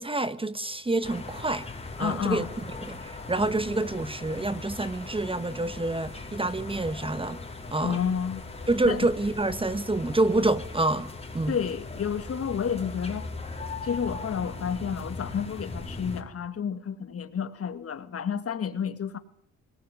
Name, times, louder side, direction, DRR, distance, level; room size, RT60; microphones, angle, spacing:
voice 1, 0.0-1.7 2.0-7.4 7.7-8.0 8.7-11.6, right 2 dB, 20° right, 1.4 m, -27 dB
sound 1, 1.0-16.2, left 3 dB, 20° left, 5.0 m, -39 dB
voice 2, 2.0-2.5 7.8-8.4 8.8-9.0 11.5-13.3 13.8-19.2, left 7 dB, 50° left, 2.5 m, -30 dB
25.0 x 19.5 x 9.6 m
cardioid pair, 90°, 30 cm